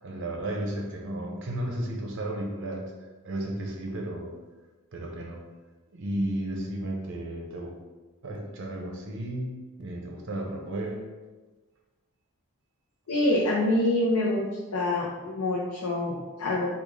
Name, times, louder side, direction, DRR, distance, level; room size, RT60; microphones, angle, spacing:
voice 1, 0.0-2.9 3.2-4.3 4.9-5.4 5.9-7.7 8.2-11.1, right 1 dB, 55° right, 1 dB, 0.6 m, -33 dB
voice 2, 13.1-14.4 14.7-16.7, left 1 dB, 80° left, -6 dB, 0.6 m, -26 dB
3.5 x 2.4 x 3.2 m, 1.2 s
head